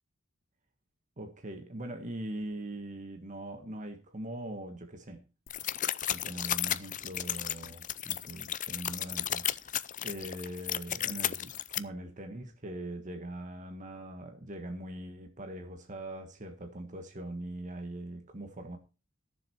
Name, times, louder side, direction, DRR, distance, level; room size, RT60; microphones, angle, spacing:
voice 1, 1.2-5.2 6.1-18.8, right 1 dB, 40° right, 1.5 m, -42 dB
sound 1, 5.5-11.8, left 11 dB, 40° left, 0.5 m, -34 dB
15.0 x 7.2 x 4.5 m
head